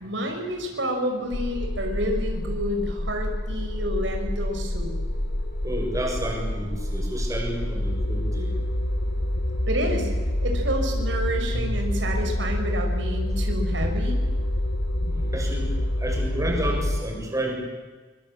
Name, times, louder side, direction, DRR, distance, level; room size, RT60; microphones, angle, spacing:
voice 1, 0.0-4.9 9.7-10.1 10.4-14.2, equal, 80° right, 3 dB, 5.3 m, -29 dB
sound 1, 1.3-17.0, left 1 dB, 70° left, 1.5 m, -27 dB
voice 2, 5.6-8.5 11.5-11.7 15.0-15.7 16.0-17.5, right 1 dB, 15° right, 0 dB, 6.9 m, -30 dB
25.0 x 24.0 x 8.8 m, 1.4 s
head